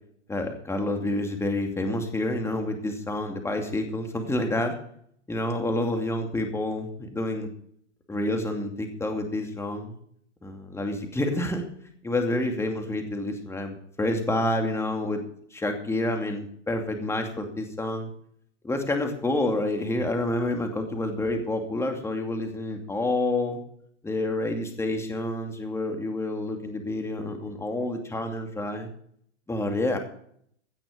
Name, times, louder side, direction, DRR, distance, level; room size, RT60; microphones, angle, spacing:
voice 1, 0.3-4.8 5.3-7.5 8.1-10.0 10.4-11.6 12.0-15.2 15.5-18.1 18.6-23.6 24.0-28.9 29.5-30.0, left 1 dB, 5° left, 4 dB, 2.5 m, -28 dB
17.0 x 10.5 x 5.2 m, 0.65 s
hypercardioid pair, 130°, 36 cm